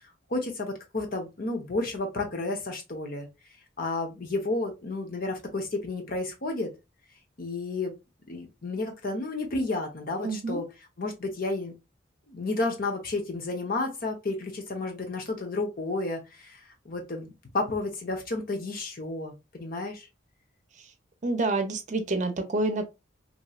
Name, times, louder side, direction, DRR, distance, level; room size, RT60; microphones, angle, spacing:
voice 1, 0.3-3.3 3.8-6.7 7.4-7.9 8.3-10.6 11.0-11.7 12.3-16.6 16.8-20.1, left 2 dB, 50° left, 0.8 m, -31 dB
voice 2, 10.2-10.6 21.2-22.8, right 2 dB, 40° right, 0.6 m, -28 dB
3.0 x 2.7 x 2.3 m
head